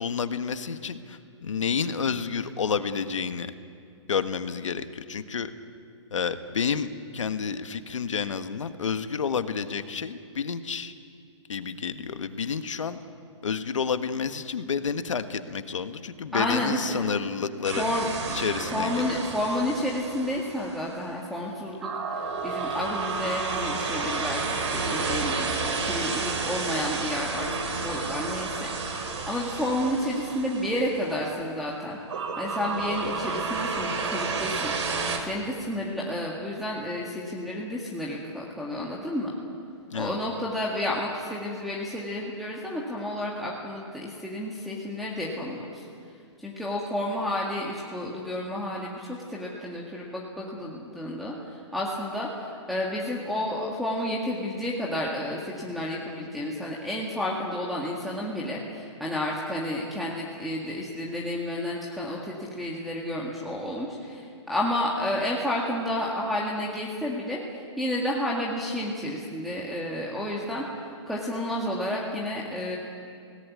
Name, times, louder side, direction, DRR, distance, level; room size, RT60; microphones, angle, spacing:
voice 1, 0.0-3.5 4.1-5.5 6.1-10.9 11.5-13.0 13.4-17.9 18.3-19.2 39.9-40.2, left 6 dB, 90° left, 10 dB, 1.4 m, -30 dB
voice 2, 16.3-17.0 17.8-18.1 18.7-27.5 27.8-32.0 32.4-34.7 35.2-39.3 39.9-45.9 46.4-70.6 71.1-72.8, left 1 dB, ahead, -5 dB, 1.9 m, -31 dB
sound 1, 17.6-21.0 21.8-31.4 32.1-35.2, right 4 dB, 65° right, 4.2 m, -31 dB
23.0 x 18.0 x 9.6 m, 2.4 s
hypercardioid pair, 155°, 16 cm